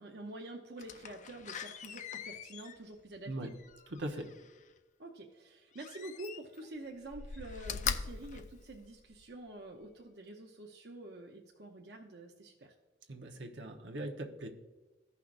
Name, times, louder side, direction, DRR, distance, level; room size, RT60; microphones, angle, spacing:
voice 1, 0.0-3.5 5.0-12.7, right 2 dB, 60° right, 1 dB, 0.8 m, -47 dB
Slam, 0.8-4.6 5.7-6.7 7.0-9.3 9.8-9.9, left 6 dB, 40° left, 0.4 m, -42 dB
voice 2, 3.9-4.3 13.1-14.5, right 1 dB, 80° right, 3 dB, 1.1 m, -40 dB
15.0 x 5.7 x 2.5 m, 1.2 s
head